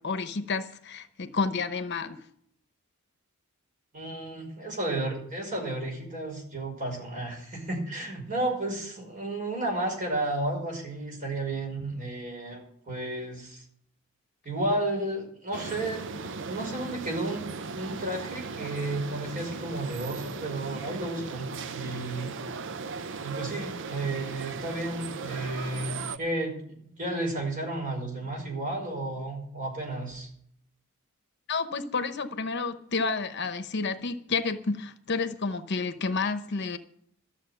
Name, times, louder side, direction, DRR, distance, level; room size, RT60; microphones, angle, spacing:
voice 1, 0.0-2.2 31.5-36.8, left 4 dB, 55° left, 10 dB, 0.9 m, -30 dB
voice 2, 3.9-13.6 14.4-17.4 17.7-22.3 23.2-30.3, right 2 dB, 40° right, 0 dB, 5.4 m, -32 dB
sound 1, 15.5-26.2, right 4 dB, 60° right, 0.6 m, -37 dB
13.0 x 7.3 x 9.0 m, 0.67 s
head